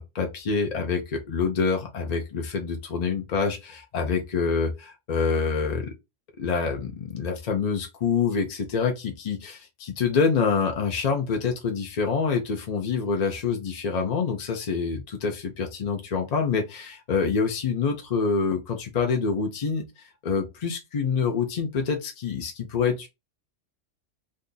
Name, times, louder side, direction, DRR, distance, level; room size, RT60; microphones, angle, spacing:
voice 1, 0.0-5.9 6.4-23.1, left 5 dB, 50° left, 0.5 m, -26 dB
2.7 x 2.5 x 3.8 m
omnidirectional pair, 1.3 m